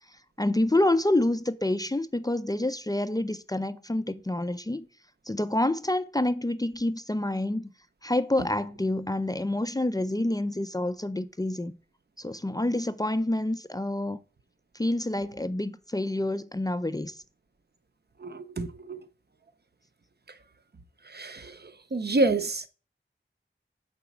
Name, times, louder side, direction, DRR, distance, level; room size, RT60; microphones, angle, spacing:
voice 1, 0.4-4.9 5.3-7.7 8.0-11.7 12.2-14.2 14.8-17.1, left 1 dB, 20° left, 0.4 m, -27 dB
voice 2, 18.2-19.0 21.1-21.5 21.9-22.6, right 2 dB, 50° right, 0.6 m, -27 dB
4.9 x 4.0 x 5.9 m
wide cardioid pair, 50°, 21 cm